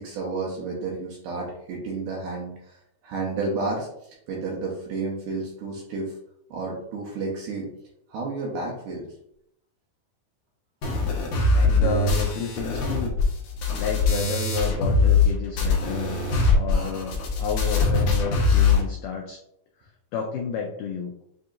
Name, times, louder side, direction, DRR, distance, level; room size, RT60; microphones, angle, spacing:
voice 1, 0.0-2.7 3.0-6.1 6.5-7.7 8.1-9.0, right 3 dB, 75° right, -2 dB, 2.1 m, -31 dB
sound 1, 10.8-15.3 15.6-18.8, left 4 dB, 75° left, 1.9 m, -22 dB
voice 2, 11.5-13.2 13.7-16.2 16.5-19.4 20.1-21.1, left 6 dB, 90° left, 1 dB, 1.8 m, -31 dB
7.6 x 2.7 x 2.5 m, 0.75 s
omnidirectional pair, 4.5 m